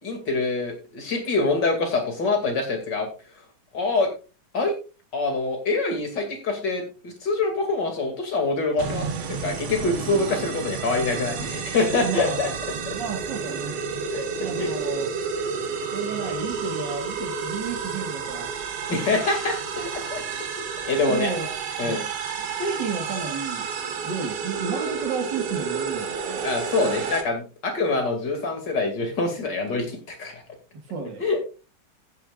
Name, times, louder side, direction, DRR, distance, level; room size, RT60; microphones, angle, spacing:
voice 1, 0.0-3.1 3.7-4.1 4.5-4.7 5.1-12.5 12.9-13.0 14.1-14.3 14.6-14.7 18.9-20.2 20.6-21.3 21.8-22.0 26.4-30.4 31.2-31.4, left 3 dB, 55° left, 3.1 m, -25 dB
sound 1, 8.8-27.2, right 6 dB, 80° right, 2.1 m, -31 dB
voice 2, 12.0-12.4 12.9-13.8 14.4-15.1 15.9-18.5 21.0-21.5 21.8-22.1 22.6-23.7 24.0-26.5 30.9-31.2, right 5 dB, 60° right, 2.3 m, -32 dB
15.0 x 10.5 x 2.5 m
omnidirectional pair, 2.3 m